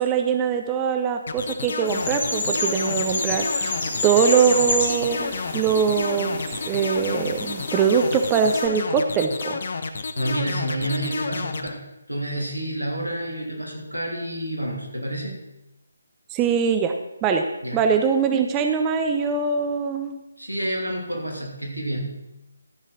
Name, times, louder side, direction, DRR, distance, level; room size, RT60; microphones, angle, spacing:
voice 1, 0.0-3.7 4.0-9.6 16.3-16.9 17.2-17.5 17.7-20.2, right 6 dB, 15° right, 5 dB, 0.6 m, -22 dB
sound 1, 1.3-11.7, left 4 dB, 50° left, 0.9 m, -30 dB
sound 2, 1.8-8.7, left 2 dB, 30° left, 3.9 m, -29 dB
voice 2, 10.1-15.3 17.6-17.8 20.4-22.2, right 1 dB, 90° right, 0 dB, 3.2 m, -29 dB
13.0 x 5.6 x 6.2 m, 0.92 s
figure-of-eight pair, 150°, 0 cm